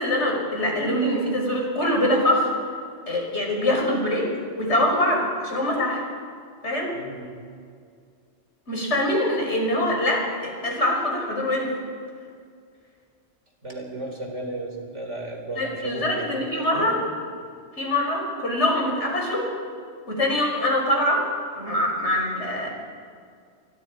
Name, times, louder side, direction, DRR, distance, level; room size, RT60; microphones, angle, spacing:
voice 1, 0.0-2.5 3.1-4.3 4.5-6.0 6.6-7.0 8.7-11.7 15.6-17.0 17.8-19.5 20.1-21.3 21.5-22.7, left 1 dB, 75° left, -1 dB, 6.0 m, -24 dB
voice 2, 6.9-7.3 13.6-17.1, right 2 dB, 85° right, 2 dB, 4.7 m, -34 dB
29.5 x 24.0 x 5.1 m, 2.2 s
omnidirectional pair, 1.2 m